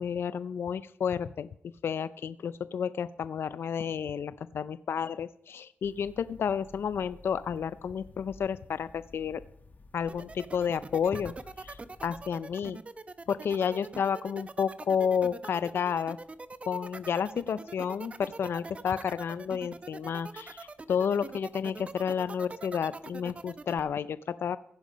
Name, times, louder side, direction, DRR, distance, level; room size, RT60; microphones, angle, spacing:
voice 1, 0.0-1.5 1.8-9.4 9.9-12.8 13.3-16.2 16.7-24.6, left 7 dB, 80° left, 15 dB, 0.5 m, -31 dB
sound 1, 5.8-12.3, left 3 dB, 45° left, 1.6 m, -51 dB
sound 2, 10.1-23.8, right 3 dB, 30° right, 0.8 m, -43 dB
15.5 x 10.5 x 5.2 m, 0.71 s
wide cardioid pair, 100°, 4 cm